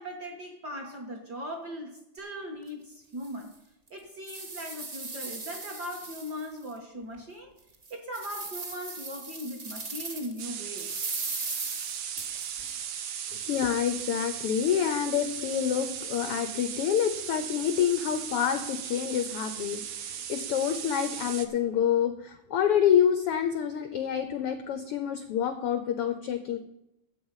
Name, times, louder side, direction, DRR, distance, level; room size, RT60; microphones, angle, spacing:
voice 1, 0.0-3.5 3.9-7.5 7.9-10.9, equal, 45° right, 1 dB, 1.5 m, -39 dB
sound 1, 2.6-2.7 3.2-3.3 3.9-6.7 7.1-7.2 7.7-10.4 10.8-12.7, right 3 dB, 30° right, 1.6 m, -38 dB
sound 2, 10.4-21.5, right 9 dB, 65° right, 1.9 m, -37 dB
voice 2, 13.5-26.6, left 9 dB, 85° left, 9 dB, 1.2 m, -27 dB
13.0 x 8.2 x 5.6 m, 0.89 s
omnidirectional pair, 3.6 m